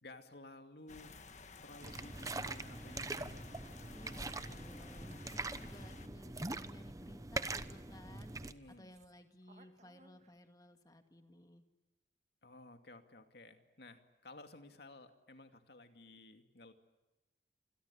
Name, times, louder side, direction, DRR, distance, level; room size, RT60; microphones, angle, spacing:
voice 1, 0.0-1.1 1.6-3.6 8.4-9.0 12.4-16.7, left 2 dB, 65° left, 7 dB, 2.5 m, -55 dB
sound 1, 0.9-6.1, left 3 dB, 40° left, 1.5 m, -53 dB
sound 2, 1.8-8.5, right 2 dB, 20° right, 0.9 m, -43 dB
voice 2, 3.9-8.4 8.8-11.6, left 1 dB, 20° left, 6 dB, 2.2 m, -57 dB
sound 3, 4.8-5.2 7.4-7.5 8.1-10.7, right 2 dB, 40° right, 1.9 m, -63 dB
27.5 x 22.0 x 8.5 m, 1.1 s
head